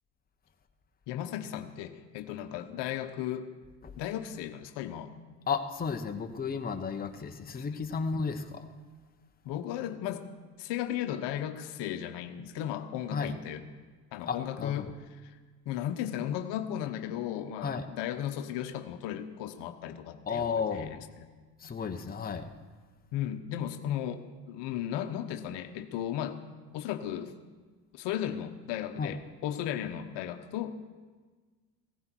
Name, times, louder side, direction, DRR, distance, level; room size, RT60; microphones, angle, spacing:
voice 1, 1.1-3.5 4.0-5.1 7.5-7.7 9.4-10.2 10.6-13.6 14.1-14.9 15.2-15.4 15.6-21.3 23.1-26.4 26.7-27.3 27.9-30.8, left 11 dB, 55° left, 7 dB, 1.2 m, -35 dB
voice 2, 5.5-8.7 13.1-13.3 14.3-14.9 17.6-17.9 20.2-20.9 21.6-22.5 29.0-29.1, left 5 dB, 20° left, 5 dB, 1.1 m, -33 dB
17.0 x 15.0 x 4.6 m, 1.4 s
hypercardioid pair, 80°, 49 cm